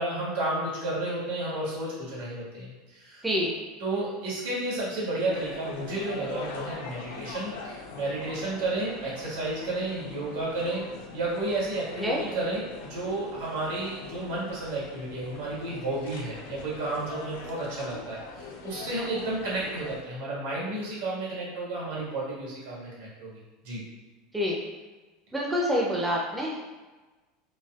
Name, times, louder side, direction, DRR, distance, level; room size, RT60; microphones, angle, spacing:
voice 1, 0.0-3.2 3.8-10.8 11.1-23.3 23.6-23.8, right 2 dB, 85° right, -6 dB, 1.4 m, -32 dB
sound 1, 5.3-20.0, left 4 dB, 85° left, 0.5 m, -42 dB
voice 2, 25.3-26.7, equal, 5° right, -3 dB, 0.4 m, -27 dB
4.0 x 2.2 x 2.3 m, 1.2 s
supercardioid pair, 165°, 0 cm